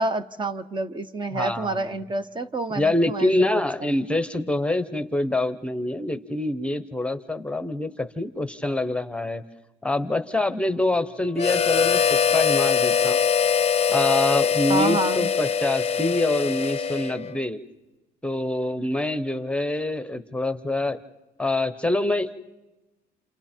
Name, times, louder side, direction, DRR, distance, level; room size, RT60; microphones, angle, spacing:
voice 1, 0.0-3.6 14.7-15.3, right 2 dB, 30° right, 11 dB, 1.0 m, -28 dB
voice 2, 1.3-1.9 2.7-9.4 9.8-12.0 12.3-13.2 13.9-17.6 18.2-21.0 21.4-22.4, left 1 dB, 5° left, 11 dB, 1.0 m, -25 dB
sound 1, 10.2-15.6 15.8-15.9, right 1 dB, 75° right, 7.8 m, -50 dB
Harmonica, 11.4-17.4, left 7 dB, 35° left, 0.7 m, -22 dB
29.0 x 29.0 x 4.5 m, 1.0 s
cardioid pair, 110°, 17 cm